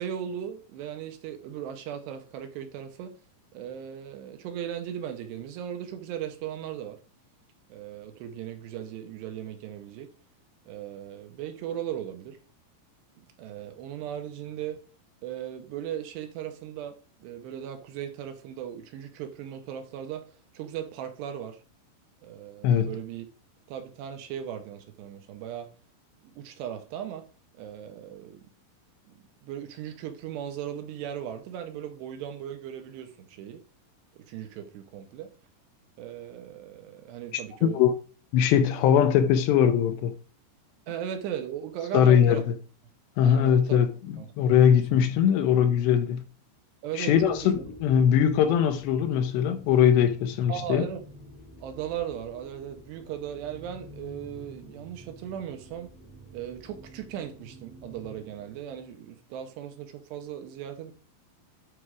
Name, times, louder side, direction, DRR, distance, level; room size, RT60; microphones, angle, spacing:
voice 1, 0.0-3.2 3.5-7.0 7.7-10.1 10.7-12.4 13.2-14.8 15.2-20.3 20.5-21.6 22.2-23.3 23.7-25.7 26.2-27.3 27.5-28.4 29.4-33.6 34.1-35.3 36.0-37.8 40.9-42.5 43.2-43.8 44.2-44.8 46.8-47.7 50.5-51.0 51.6-55.9 56.3-60.9, right 10 dB, 75° right, 2.8 m, -37 dB
voice 2, 37.6-37.9 38.3-40.1 41.9-42.4 43.2-43.9 44.4-46.2 47.0-50.8, left 8 dB, 80° left, 2.7 m, -21 dB
sound 1, 47.1-59.1, equal, 5° left, 1.0 m, -48 dB
10.0 x 4.7 x 4.8 m
omnidirectional pair, 5.4 m